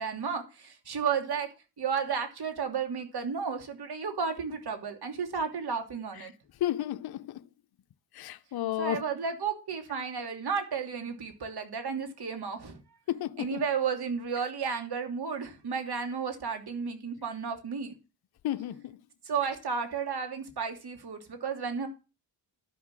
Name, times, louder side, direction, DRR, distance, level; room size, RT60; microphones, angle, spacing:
voice 1, 0.0-1.5 1.8-6.3 8.8-12.8 13.4-17.9 19.2-21.9, right 6 dB, 50° right, 2.8 m, -33 dB
voice 2, 6.6-7.4 8.1-9.0 13.1-13.6 18.4-18.9, left 13 dB, 50° left, 0.7 m, -32 dB
12.0 x 5.8 x 7.5 m
supercardioid pair, 50°, 49 cm